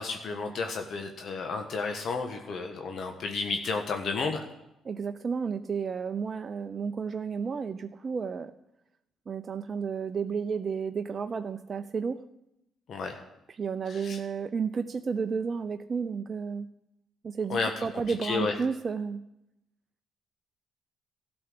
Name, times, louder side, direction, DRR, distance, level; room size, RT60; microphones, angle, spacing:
voice 1, 0.0-4.4 12.9-13.2 13.9-14.2 17.5-17.9 18.2-18.5, left 4 dB, 60° left, 4 dB, 1.4 m, -32 dB
voice 2, 4.8-8.5 9.3-12.2 13.6-16.7 17.2-19.2, right 5 dB, 45° right, 8 dB, 0.6 m, -32 dB
13.0 x 7.0 x 9.7 m, 0.86 s
supercardioid pair, 55°, 0 cm